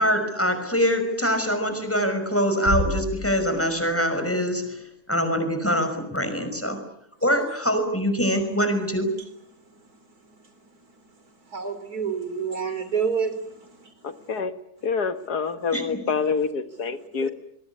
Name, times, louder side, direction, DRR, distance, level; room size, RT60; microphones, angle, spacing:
voice 1, 0.0-4.8 5.1-6.8 7.2-9.1 15.7-16.0, equal, 10° left, 8 dB, 5.7 m, -24 dB
Bass drum, 2.7-4.1, equal, 40° right, 6.1 m, -29 dB
voice 2, 11.5-13.8 17.2-17.3, right 6 dB, 75° right, 10 dB, 3.9 m, -28 dB
voice 3, 14.0-14.5 14.8-17.3, left 5 dB, 85° left, 9 dB, 2.2 m, -27 dB
26.0 x 22.5 x 8.5 m, 0.76 s
omnidirectional pair, 1.6 m